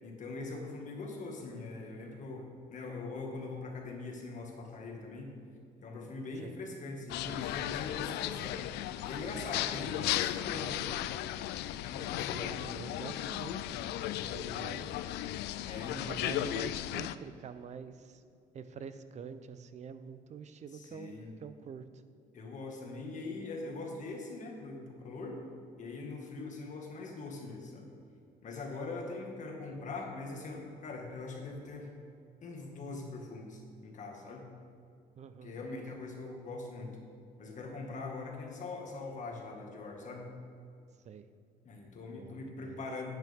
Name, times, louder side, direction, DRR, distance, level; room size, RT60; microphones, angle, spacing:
voice 1, 0.0-5.3 5.8-8.6 9.0-11.0 11.9-12.5 15.6-16.1 20.7-21.3 22.3-25.4 25.8-27.9 28.4-31.9 32.4-34.4 35.4-37.0 37.4-40.3 41.7-43.2, left 3 dB, 45° left, 1 dB, 1.9 m, -42 dB
sound 1, 7.1-17.2, left 13 dB, 80° left, 0.4 m, -36 dB
voice 2, 12.3-15.0 16.0-18.2 18.5-21.2 21.4-21.9 35.2-35.6 41.0-41.2 42.1-42.8, right 6 dB, 45° right, 12 dB, 0.6 m, -46 dB
10.5 x 9.1 x 3.6 m, 2.4 s
cardioid pair, 110°, 17 cm